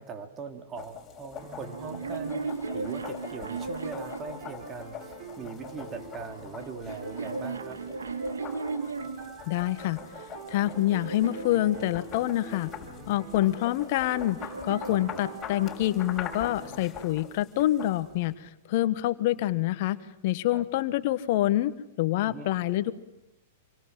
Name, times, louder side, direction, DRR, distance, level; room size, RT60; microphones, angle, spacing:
voice 1, 0.0-7.8 14.8-15.2 20.5-20.6 22.2-22.5, right 4 dB, 25° right, 6 dB, 3.2 m, -41 dB
sound 1, 0.8-18.3, left 7 dB, 25° left, 6.0 m, -44 dB
sound 2, 1.4-6.7 7.0-16.8, right 3 dB, 45° right, 6.1 m, -46 dB
sound 3, 1.7-5.1 6.0-9.4 10.1-12.5 13.5-15.9, right 4 dB, 85° right, 2.6 m, -37 dB
voice 2, 9.5-12.7 13.1-21.7 22.0-22.9, left 14 dB, 55° left, 13 dB, 1.3 m, -27 dB
27.5 x 24.0 x 7.6 m, 0.85 s
hypercardioid pair, 110°, 0 cm